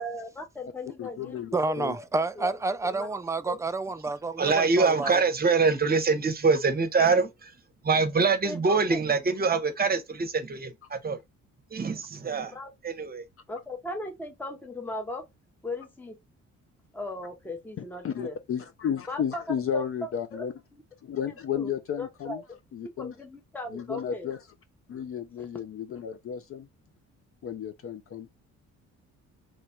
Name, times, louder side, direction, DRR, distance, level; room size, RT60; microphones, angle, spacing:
voice 1, 0.0-1.4 1.9-2.1 2.4-2.6 2.8-3.1 3.5-3.6 8.4-9.0 12.5-12.7 13.5-15.3 15.6-16.2 16.9-18.4 19.1-19.4 19.7-20.4 21.5-22.4 22.8-24.3, left 1 dB, 5° left, 0.7 m, -37 dB
voice 2, 1.0-2.0 5.0-5.1 18.0-20.5 21.0-22.4 22.7-23.1 23.7-24.4 24.9-26.7 27.4-28.3, left 8 dB, 50° left, 0.5 m, -33 dB
voice 3, 1.5-5.2, right 3 dB, 10° right, 0.3 m, -29 dB
voice 4, 4.4-7.5 7.8-11.2 11.7-12.5 12.8-13.2, right 4 dB, 30° right, 0.8 m, -24 dB
3.1 x 2.3 x 4.2 m
cardioid pair, 90°, 30 cm